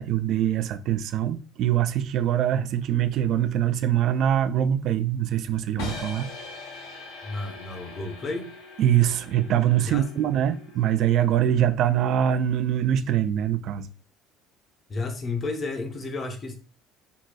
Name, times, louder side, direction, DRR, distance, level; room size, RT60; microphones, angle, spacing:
voice 1, 0.0-6.3 8.8-13.9, right 10 dB, 60° right, 0.3 m, -23 dB
sound 1, 5.8-11.8, left 3 dB, 80° left, 0.8 m, -41 dB
voice 2, 7.2-8.5 9.8-10.3 14.9-16.6, left 3 dB, 35° left, 0.8 m, -32 dB
3.9 x 2.3 x 2.2 m
hypercardioid pair, 75°, 0 cm